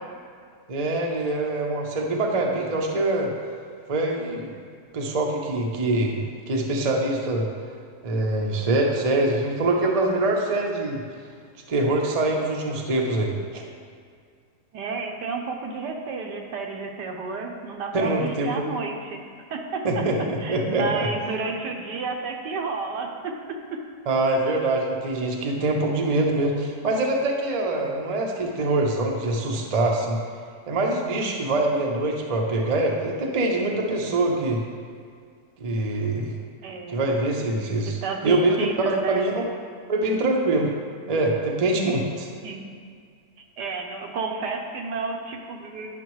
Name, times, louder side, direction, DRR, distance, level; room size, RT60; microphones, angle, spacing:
voice 1, 0.7-3.3 3.9-4.5 4.9-7.5 8.0-11.0 11.7-13.6 17.9-18.6 19.8-21.1 24.1-30.2 30.7-34.6 35.6-36.3 36.9-38.7 39.1-39.4 39.9-40.7 41.1-42.3, right 2 dB, 35° right, 0 dB, 0.6 m, -24 dB
voice 2, 14.7-19.2 19.5-20.0 20.4-23.8 36.6-37.0 38.0-39.2 42.4-42.6 43.6-45.9, right 4 dB, 80° right, 2 dB, 1.4 m, -31 dB
10.5 x 5.9 x 3.1 m, 2.1 s
omnidirectional pair, 1.8 m